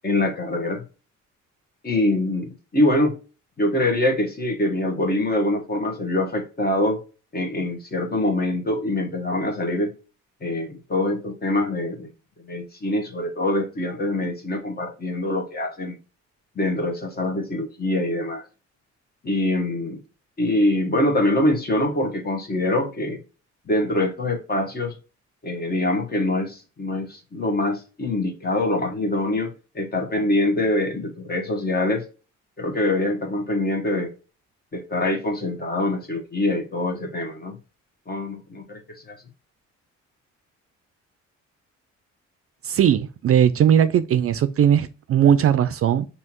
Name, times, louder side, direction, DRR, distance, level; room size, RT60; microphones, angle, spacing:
voice 1, 0.0-0.8 1.8-3.2 3.6-7.0 7.3-9.9 10.4-12.1 12.4-16.0 16.5-18.4 19.2-20.0 20.4-23.2 23.7-25.0 25.4-32.0 32.6-34.1 34.7-37.6 38.1-38.8 39.1-39.2, left 1 dB, 30° left, 1.3 m, -24 dB
voice 2, 42.6-46.1, right 9 dB, 50° right, 0.4 m, -18 dB
5.5 x 2.9 x 2.9 m
cardioid pair, 90°, 30 cm